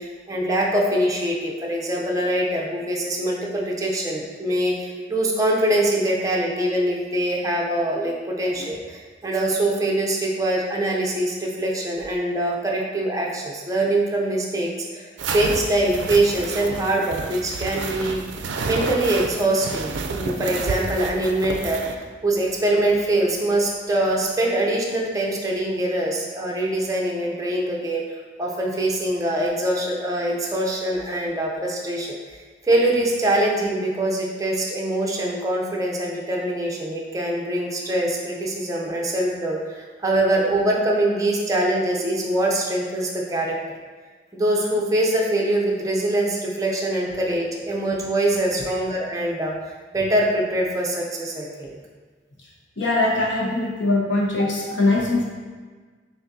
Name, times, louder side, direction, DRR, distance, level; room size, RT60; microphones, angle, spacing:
voice 1, 0.0-15.1 15.3-18.2 18.6-28.0 28.4-32.4 32.6-43.6 44.3-49.5 49.9-51.8, right 1 dB, 20° right, -2 dB, 0.5 m, -23 dB
sound 1, 15.2-22.0, right 4 dB, 75° right, 0.4 m, -30 dB
voice 2, 52.8-55.3, left 2 dB, 75° left, -4 dB, 1.0 m, -21 dB
6.2 x 2.6 x 2.7 m, 1.5 s
head